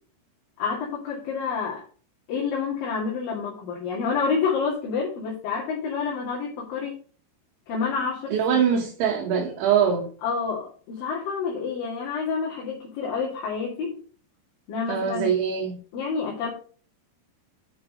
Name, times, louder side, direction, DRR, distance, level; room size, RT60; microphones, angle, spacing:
voice 1, 0.6-1.8 2.3-6.9 7.7-8.6 10.2-13.9 14.7-15.3 15.9-16.5, left 5 dB, 55° left, -5 dB, 3.5 m, -28 dB
voice 2, 8.3-10.1 14.9-15.8, right 7 dB, 75° right, 1 dB, 3.4 m, -23 dB
8.6 x 5.6 x 5.0 m, 0.41 s
omnidirectional pair, 5.6 m